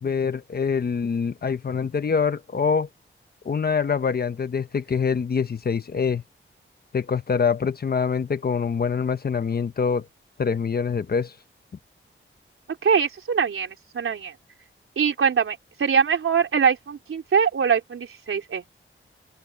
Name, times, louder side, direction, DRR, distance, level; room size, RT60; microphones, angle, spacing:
voice 1, 0.0-2.9 3.4-6.2 6.9-10.1 10.4-11.3, left 6 dB, 50° left, 0.9 m, -25 dB
voice 2, 12.7-14.3 15.0-18.6, right 6 dB, 85° right, 4.0 m, -23 dB
open air
wide cardioid pair, 150°, 21 cm